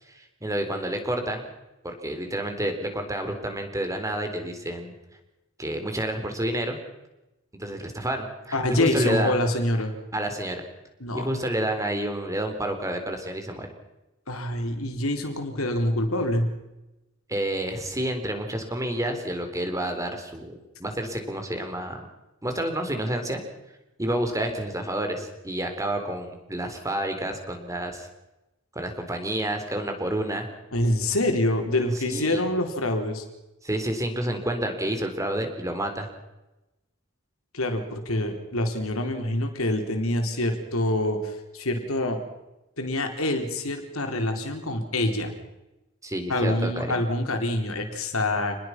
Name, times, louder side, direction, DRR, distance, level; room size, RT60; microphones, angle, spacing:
voice 1, 0.1-1.5 1.8-4.9 5.6-6.8 7.6-9.3 10.1-10.6 11.1-13.7 17.3-22.0 22.4-23.4 24.0-28.1 28.7-30.5 31.9-32.4 33.6-36.1 46.0-47.0, right 1 dB, 15° right, 6 dB, 3.9 m, -29 dB
voice 2, 8.5-10.0 11.0-11.3 14.3-16.5 30.7-33.2 37.5-42.2 42.8-45.3 46.3-48.6, left 1 dB, 85° left, 5 dB, 4.0 m, -26 dB
28.0 x 20.5 x 6.0 m, 0.97 s
head